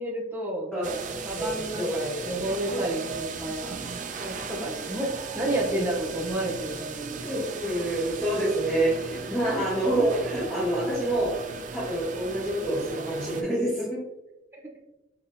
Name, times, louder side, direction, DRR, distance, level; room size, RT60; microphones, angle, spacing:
voice 1, 0.0-0.8 1.2-3.8 4.2-7.2, right 1 dB, 10° right, -3 dB, 0.7 m, -31 dB
voice 2, 0.7-2.8 4.0-4.2 4.5-4.6 5.7-5.8 7.2-11.3 11.7-14.0, right 1 dB, 5° left, -10 dB, 1.1 m, -28 dB
sound 1, 0.8-13.4, right 4 dB, 40° right, 0.3 m, -37 dB
5.4 x 2.9 x 2.6 m, 0.93 s
head